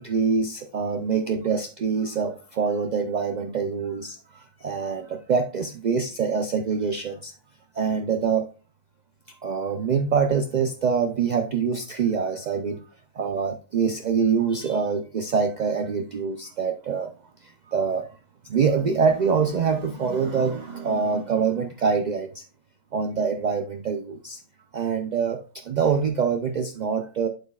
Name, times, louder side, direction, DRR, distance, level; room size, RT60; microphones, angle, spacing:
voice 1, 0.0-7.3 7.7-8.5 9.4-12.9 13.1-17.1 17.4-18.1 18.4-22.4 22.9-24.4 24.7-27.3, right 6 dB, 55° right, 6 dB, 0.4 m, -25 dB
8.2 x 8.0 x 2.3 m, 0.36 s
omnidirectional pair, 1.4 m